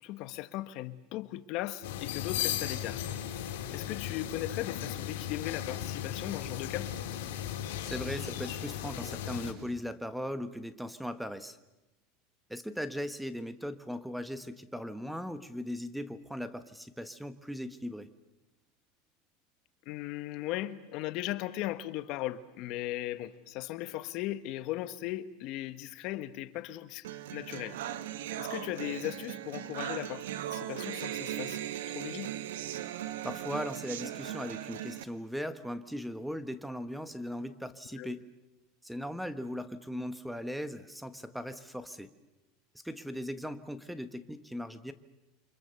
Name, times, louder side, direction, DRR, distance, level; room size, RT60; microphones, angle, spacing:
voice 1, 0.0-3.0 3.7-6.9 19.8-27.8 28.4-30.2 30.5-31.6 31.9-32.3 37.9-38.1, left 15 dB, 55° left, 1.3 m, -37 dB
sound 1, 1.8-9.5, left 11 dB, 80° left, 4.1 m, -36 dB
voice 2, 7.8-11.6 12.5-18.1 33.2-38.2 38.8-42.1 42.8-44.9, equal, ahead, 1.3 m, -38 dB
sound 2, 27.0-35.0, right 11 dB, 90° right, 1.7 m, -38 dB
29.5 x 25.5 x 6.9 m
supercardioid pair, 125°, 0 cm